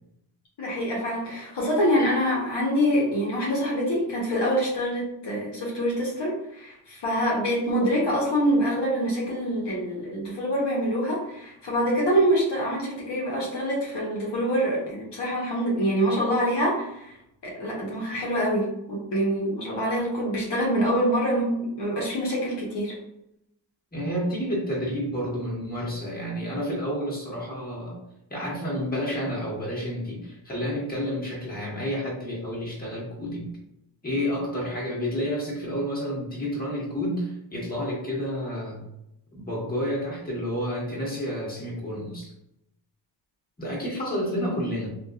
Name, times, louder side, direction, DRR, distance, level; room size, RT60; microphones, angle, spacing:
voice 1, 0.6-17.2 17.4-22.9, equal, 60° left, -4 dB, 1.0 m, -25 dB
voice 2, 23.9-28.0 28.3-33.6 34.0-38.8 39.3-42.3 43.6-44.9, equal, 20° left, -5 dB, 1.3 m, -30 dB
2.8 x 2.5 x 2.3 m, 0.80 s
cardioid pair, 55°, 46 cm